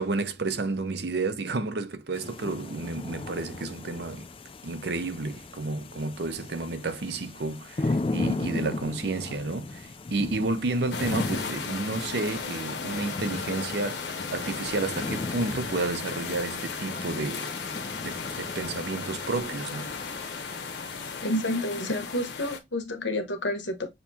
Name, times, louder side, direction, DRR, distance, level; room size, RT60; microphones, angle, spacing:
voice 1, 0.0-4.3 4.6-17.5 18.0-20.0, right 3 dB, 60° right, 0.6 m, -31 dB
sound 1, 2.1-21.2, left 2 dB, 30° left, 0.4 m, -37 dB
sound 2, 10.9-22.6, left 5 dB, 65° left, 0.9 m, -36 dB
voice 2, 21.2-23.9, left 1 dB, 85° left, 1.2 m, -29 dB
6.7 x 2.8 x 2.8 m
head